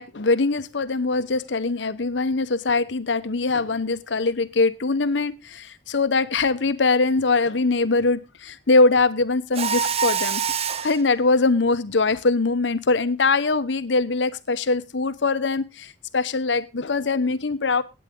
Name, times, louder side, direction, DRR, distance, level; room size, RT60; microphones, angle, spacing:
voice 1, 0.0-10.4 10.8-17.8, left 3 dB, 90° left, 14 dB, 0.9 m, -22 dB
Mechanisms, 9.5-11.0, right 7 dB, 35° right, 0.7 m, -25 dB
17.0 x 8.9 x 3.7 m, 0.26 s
head